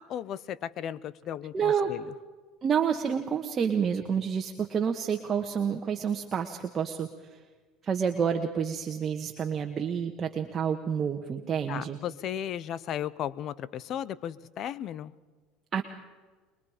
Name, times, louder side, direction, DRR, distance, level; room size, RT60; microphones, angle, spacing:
voice 1, 0.0-2.1 11.7-15.1, left 10 dB, 50° left, 20 dB, 0.8 m, -35 dB
voice 2, 1.5-1.9 2.6-7.1 7.8-12.0 15.7-15.8, right 7 dB, 35° right, 3 dB, 1.5 m, -29 dB
24.0 x 22.0 x 5.1 m, 1.4 s
supercardioid pair, 100°, 0 cm